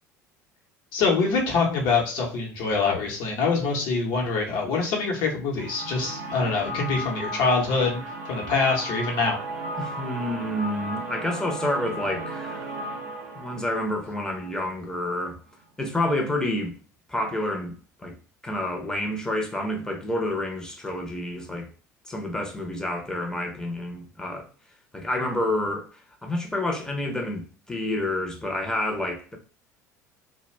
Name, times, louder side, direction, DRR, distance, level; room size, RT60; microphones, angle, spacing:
voice 1, 0.9-8.0 8.3-9.4, left 4 dB, 55° left, 0.9 m, -24 dB
sound 1, 5.6-15.3, right 1 dB, 60° right, 0.6 m, -35 dB
voice 2, 9.8-12.8 13.3-15.4 15.8-16.7 17.1-18.1 18.4-21.7 22.1-24.5 24.9-25.9 26.2-29.4, left 1 dB, 5° left, 0.7 m, -29 dB
2.3 x 2.1 x 3.2 m
figure-of-eight pair, 65°, 9 cm